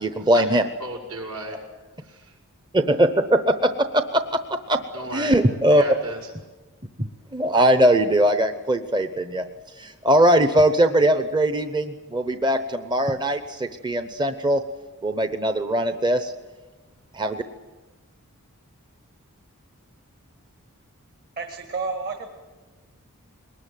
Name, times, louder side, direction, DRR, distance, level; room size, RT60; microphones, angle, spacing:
voice 1, 0.0-0.6 2.7-4.4 4.7-4.8 5.1-5.8 7.0-9.4 9.8-14.6 15.0-16.3 17.1-17.4, right 1 dB, 20° right, 8 dB, 0.8 m, -20 dB
voice 2, 0.8-1.6 2.0-2.3 4.9-5.3 5.7-6.2, right 2 dB, 75° right, 1 dB, 7.0 m, -34 dB
voice 3, 21.4-22.3, right 4 dB, 45° right, 3 dB, 2.0 m, -30 dB
22.5 x 20.0 x 9.2 m, 1.2 s
head